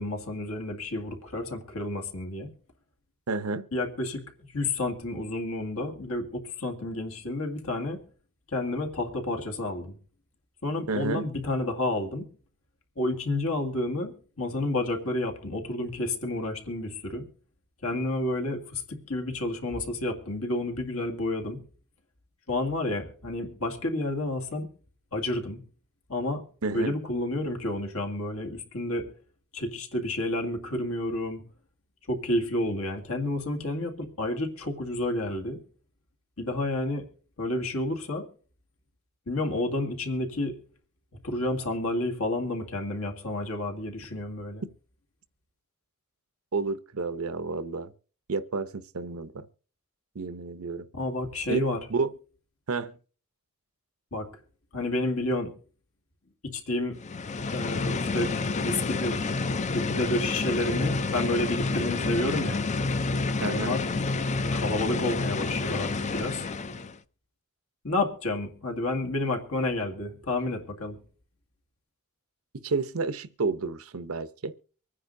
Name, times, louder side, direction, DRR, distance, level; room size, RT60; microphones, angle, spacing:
voice 1, 0.0-2.5 3.7-8.0 8.5-10.0 10.6-12.3 13.0-17.2 17.8-21.6 22.5-24.7 25.1-25.6 26.1-26.4 26.7-29.1 29.5-31.4 32.1-35.6 36.4-37.0 37.4-38.3 39.3-40.6 41.2-44.6 50.9-51.8 54.1-54.3 54.7-55.5 56.4-57.0 57.5-58.3 58.6-59.3 59.7-62.6 63.5-63.9 64.5-66.4 67.8-71.0, left 2 dB, 75° left, 2.2 m, -30 dB
voice 2, 3.3-3.7 10.9-11.3 26.6-26.9 46.5-47.9 48.3-49.4 50.1-50.9 51.5-51.6 51.9-52.1 52.7-52.9 63.4-63.8 72.6-74.5, right 4 dB, 75° right, 0.8 m, -30 dB
sound 1, 57.0-67.0, left 3 dB, 35° left, 0.5 m, -29 dB
24.5 x 9.8 x 2.7 m
head